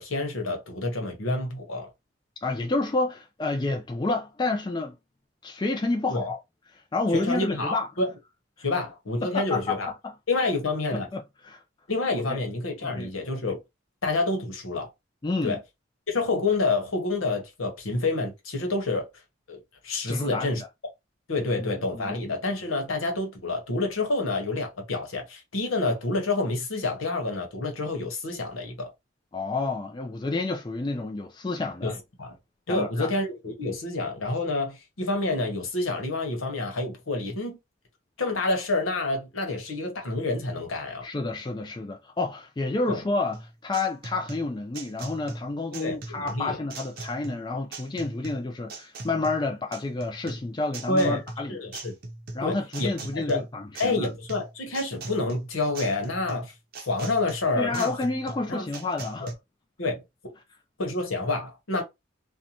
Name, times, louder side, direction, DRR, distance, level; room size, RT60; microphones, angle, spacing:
voice 1, 0.0-1.9 6.1-6.3 7.1-8.1 8.6-9.9 10.3-11.1 11.9-13.6 14.0-14.9 15.4-15.6 16.1-19.1 19.5-20.6 21.3-28.9 31.8-32.3 32.7-37.6 38.2-41.1 42.9-43.0 45.7-46.6 50.9-51.2 51.5-51.9 52.4-53.4 53.8-56.5 56.9-57.9 58.5-58.6 59.2-59.3 59.8-60.0 60.8-61.8, left 2 dB, 85° left, 1.0 m, -28 dB
voice 2, 2.4-5.0 5.4-6.4 6.9-7.9 9.2-10.1 11.1-11.6 12.3-12.4 12.8-13.1 15.2-15.6 20.1-20.6 21.4-22.3 29.3-31.9 32.7-33.1 41.0-51.6 52.3-54.1 57.6-59.3, left 3 dB, 20° left, 0.3 m, -29 dB
sound 1, 43.3-59.3, right 2 dB, 45° right, 0.6 m, -40 dB
2.6 x 2.2 x 2.8 m
head